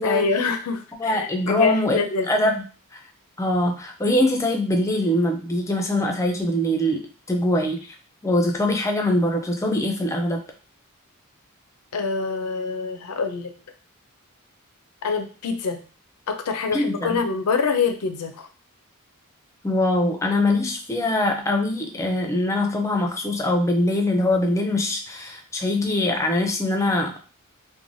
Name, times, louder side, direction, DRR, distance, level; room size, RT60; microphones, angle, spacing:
voice 1, 0.0-2.3 11.9-13.5 15.0-15.8 16.3-18.5, left 4 dB, 85° left, 7 dB, 0.5 m, -25 dB
voice 2, 1.0-2.0 2.3-2.6 2.9-3.0 3.4-7.9 8.2-10.4 16.7-17.2 19.6-27.2, left 1 dB, 15° left, 3 dB, 0.4 m, -23 dB
3.1 x 2.2 x 2.6 m, 0.37 s
head